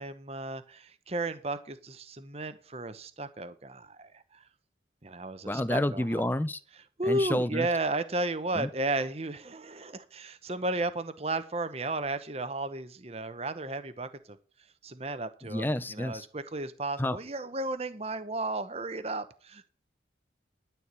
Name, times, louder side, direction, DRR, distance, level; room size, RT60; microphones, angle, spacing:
voice 1, 0.0-4.4 5.0-6.0 7.0-14.4 14.8-19.7, right 2 dB, 35° right, 1.0 m, -34 dB
voice 2, 5.4-6.6 7.1-7.7 8.5-8.7 15.4-16.3 17.0-17.2, left 1 dB, 10° left, 0.5 m, -29 dB
12.5 x 4.5 x 8.3 m
head